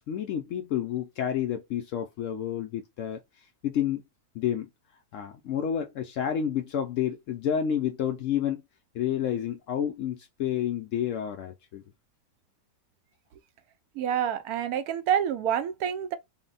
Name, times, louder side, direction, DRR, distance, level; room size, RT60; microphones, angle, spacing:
voice 1, 0.0-4.0 4.3-4.7 5.1-8.6 8.9-11.8, left 9 dB, 80° left, 0.7 m, -30 dB
voice 2, 14.0-16.1, right 9 dB, 70° right, 0.9 m, -27 dB
4.0 x 2.1 x 3.8 m
omnidirectional pair, 1.9 m